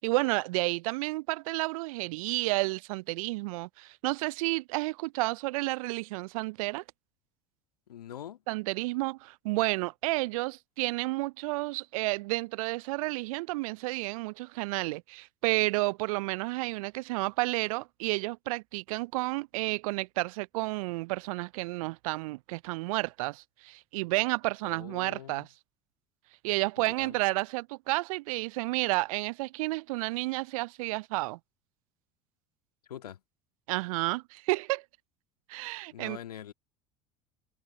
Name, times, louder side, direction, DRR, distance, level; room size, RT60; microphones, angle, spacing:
voice 1, 0.0-6.8 8.5-25.5 26.4-31.4 33.7-34.8 35.5-36.2, right 23 dB, 65° right, 0.4 m, -31 dB
voice 2, 7.9-8.4 24.6-25.5 26.8-27.2 32.9-33.2 35.9-36.5, left 10 dB, 80° left, 1.7 m, -44 dB
figure-of-eight pair, 70°, 20 cm